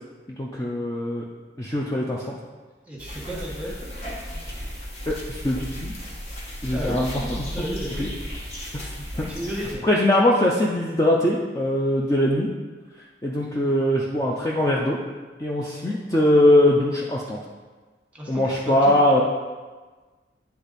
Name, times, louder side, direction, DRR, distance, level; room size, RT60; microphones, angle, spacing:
voice 1, 0.4-1.2 1.6-2.4 5.1-5.9 6.6-7.7 8.0-8.1 8.7-8.9 9.2-9.3 9.8-12.5 13.2-15.0 15.4-17.4 18.3-19.2, left 1 dB, 15° left, -3 dB, 0.5 m, -21 dB
voice 2, 2.9-3.7 6.7-7.0 7.5-8.1 9.3-9.8 15.6-15.9 18.1-19.0, equal, 10° right, -3 dB, 1.3 m, -33 dB
sound 1, 3.0-9.7, equal, 35° left, 1.3 m, -35 dB
9.9 x 3.4 x 4.1 m, 1.4 s
head